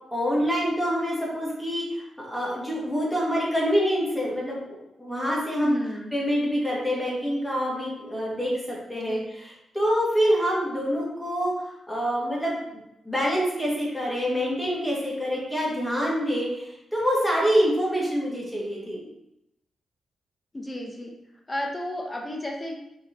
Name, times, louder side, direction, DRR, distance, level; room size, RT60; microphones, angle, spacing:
voice 1, 0.1-5.7 6.1-9.2 9.7-12.6 13.0-19.0, equal, 5° left, -5 dB, 2.3 m, -26 dB
voice 2, 5.6-6.1 9.1-9.3 20.5-21.1 21.5-22.8, left 1 dB, 20° left, 1 dB, 1.0 m, -33 dB
6.9 x 4.6 x 3.1 m, 0.85 s
cardioid pair, 100°, 0 cm